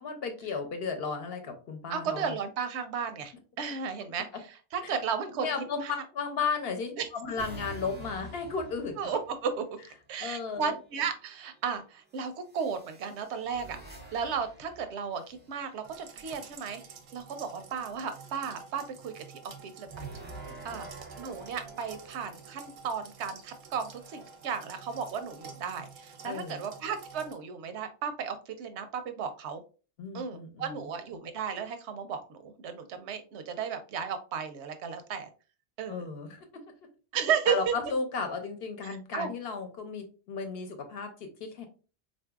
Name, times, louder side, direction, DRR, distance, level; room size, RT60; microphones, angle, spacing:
voice 1, 0.0-2.3 4.8-4.9 5.3-5.8 6.1-9.0 10.2-10.8 26.2-26.6 30.0-30.8 35.9-36.5 37.5-41.7, left 4 dB, 70° left, 5 dB, 0.9 m, -34 dB
voice 2, 1.9-6.0 7.0-7.1 9.0-9.6 10.1-13.8 14.1-16.8 17.1-20.1 20.6-20.9 21.2-29.6 30.1-35.3 35.8-36.1 37.1-37.7 38.8-39.3, right 6 dB, 85° right, 9 dB, 0.9 m, -34 dB
sound 1, 7.4-9.6 10.9-11.4 12.5-15.9 19.8-22.8 23.5-25.4, right 2 dB, 15° right, 0.4 m, -47 dB
sound 2, 15.8-27.3, right 6 dB, 60° right, 0.6 m, -50 dB
3.9 x 2.6 x 2.3 m, 0.35 s
omnidirectional pair, 1.1 m